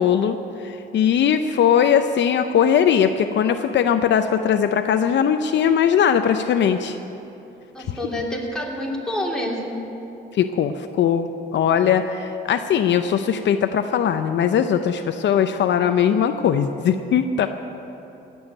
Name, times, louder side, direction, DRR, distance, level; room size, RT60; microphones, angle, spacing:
voice 1, 0.0-7.0 10.3-17.5, left 8 dB, 65° left, 8 dB, 0.7 m, -20 dB
voice 2, 7.7-9.8, left 1 dB, 5° left, -3 dB, 3.0 m, -27 dB
17.0 x 7.2 x 9.3 m, 2.9 s
cardioid pair, 90°, 20 cm